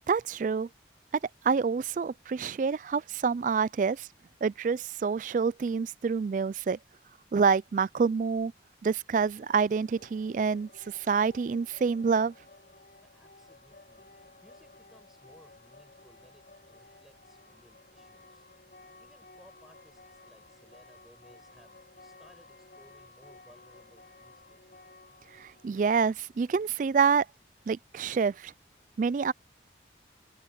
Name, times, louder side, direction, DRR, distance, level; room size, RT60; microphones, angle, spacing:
voice 1, 0.1-0.7 1.4-4.1 4.4-6.8 7.3-8.5 8.8-12.3 25.4-27.3 27.7-28.5 29.0-29.3, right 5 dB, 45° right, 0.3 m, -27 dB
sound 1, 9.2-27.0, left 3 dB, 50° left, 6.1 m, -56 dB
voice 2, 13.0-18.5 19.0-24.9, equal, ahead, 6.2 m, -61 dB
head